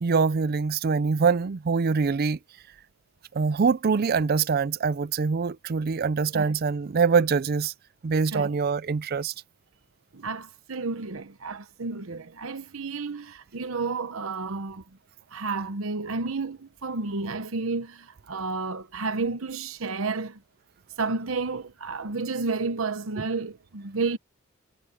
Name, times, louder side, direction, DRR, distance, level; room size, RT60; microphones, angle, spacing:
voice 1, 0.0-2.4 3.3-7.7 8.0-9.3, right 5 dB, 45° right, 0.4 m, -24 dB
voice 2, 10.1-14.8 15.3-20.4 21.0-24.2, right 3 dB, 75° right, 1.0 m, -31 dB
head